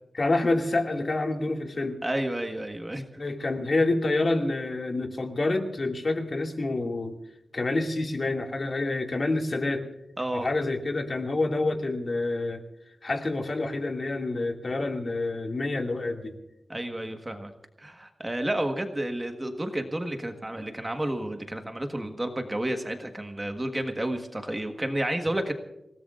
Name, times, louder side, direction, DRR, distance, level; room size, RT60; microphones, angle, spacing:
voice 1, 0.1-2.0 3.2-7.2 7.5-9.9 10.3-12.6 13.0-16.4, left 2 dB, 40° left, 3 dB, 2.3 m, -27 dB
voice 2, 2.0-3.2 10.2-10.5 16.7-17.5 17.8-25.5, right 1 dB, 15° right, 5 dB, 1.5 m, -31 dB
28.0 x 18.0 x 2.5 m, 0.87 s
wide cardioid pair, 130°, 0 cm